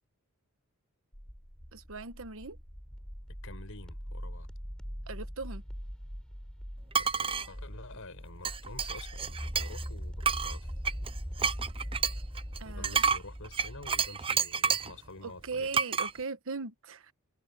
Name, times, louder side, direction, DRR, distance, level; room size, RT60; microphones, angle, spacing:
sound 1, 1.1-14.1, equal, 5° left, 5.4 m, -41 dB
voice 1, 1.7-2.6 5.1-5.6 12.6-13.0 15.2-17.1, right 4 dB, 65° right, 1.3 m, -39 dB
voice 2, 3.3-4.5 6.9-10.7 12.6-15.7, left 2 dB, 65° left, 7.1 m, -48 dB
sound 2, 6.9-7.5 8.4-9.9 10.2-15.0 15.7-16.1, right 6 dB, 25° right, 0.6 m, -30 dB
head